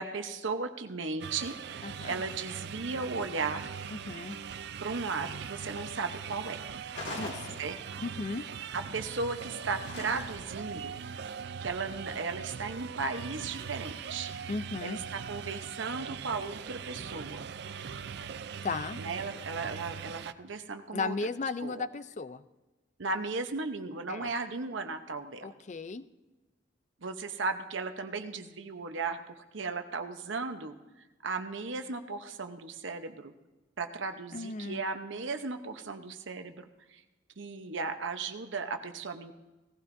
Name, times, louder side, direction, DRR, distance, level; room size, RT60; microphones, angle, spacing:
voice 1, 0.0-1.5 2.1-3.7 4.8-6.6 7.6-7.8 8.7-11.0 11.6-14.3 14.8-17.4 19.0-21.1 21.6-21.8 23.0-25.5 27.0-30.7 31.2-33.3 33.8-37.0 37.4-39.3, right 4 dB, 75° right, 7 dB, 0.8 m, -36 dB
sound 1, 1.2-20.3, right 6 dB, 55° right, 0.4 m, -41 dB
voice 2, 1.8-2.2 3.9-4.4 7.1-7.6 8.0-8.5 14.5-15.0 18.6-19.0 20.9-22.4 24.1-24.3 25.4-26.1 34.3-34.8, left 4 dB, 35° left, 14 dB, 0.4 m, -36 dB
sound 2, 6.9-8.1 9.8-10.6, left 2 dB, 65° left, 2.0 m, -41 dB
18.0 x 15.0 x 2.6 m, 1.1 s
head